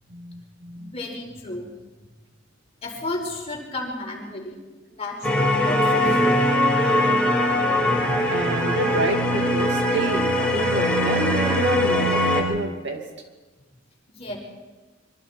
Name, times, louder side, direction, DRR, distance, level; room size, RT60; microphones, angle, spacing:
voice 1, 0.1-0.9 8.3-13.0, right 2 dB, 60° right, 3 dB, 2.7 m, -28 dB
voice 2, 0.8-1.7 2.8-4.6 4.9-6.5 7.7-8.3 12.1-12.2 14.1-14.4, left 2 dB, 30° left, -1 dB, 5.1 m, -33 dB
sound 1, 5.2-12.4, left 1 dB, 5° left, 5.1 m, -21 dB
25.0 x 24.0 x 4.6 m, 1.2 s
head